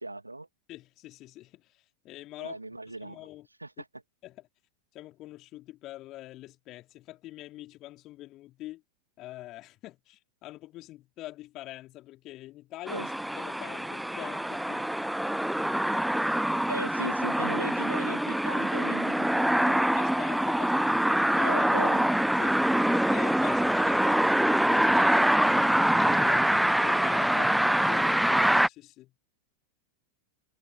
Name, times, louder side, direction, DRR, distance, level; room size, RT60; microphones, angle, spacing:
voice 1, 0.0-0.5 2.4-3.2 3.6-3.9 12.9-13.1 16.7-19.9 21.4-22.1 27.3-27.5, right 2 dB, 85° right, 1.8 m, -38 dB
voice 2, 0.7-3.5 4.2-4.5 4.9-8.8 9.2-14.9 19.8-21.7 22.4-22.6 22.8-29.2, left 16 dB, 35° left, 4.1 m, -44 dB
sound 1, 12.9-28.7, right 1 dB, ahead, 0.5 m, -25 dB
figure-of-eight pair, 90°, 0 cm